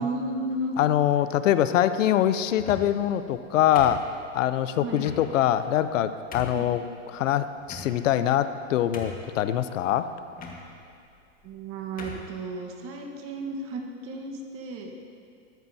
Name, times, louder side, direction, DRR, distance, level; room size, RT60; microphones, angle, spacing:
voice 1, 0.0-0.8 4.8-5.1 6.5-6.8 11.4-14.9, right 2 dB, 35° right, 2 dB, 1.3 m, -33 dB
voice 2, 0.8-4.0 4.3-6.8 7.1-10.1, left 11 dB, 75° left, 12 dB, 0.7 m, -23 dB
sound 1, 2.5-3.0 3.8-4.4 5.0-5.2 5.8-5.9 6.3-6.7 7.6-8.2 8.6-8.7 8.9-9.4 10.3-10.6 11.4-11.6 12.0-12.3, left 3 dB, 20° left, 1.5 m, -40 dB
13.5 x 12.5 x 2.7 m, 2.5 s
hypercardioid pair, 120°, 38 cm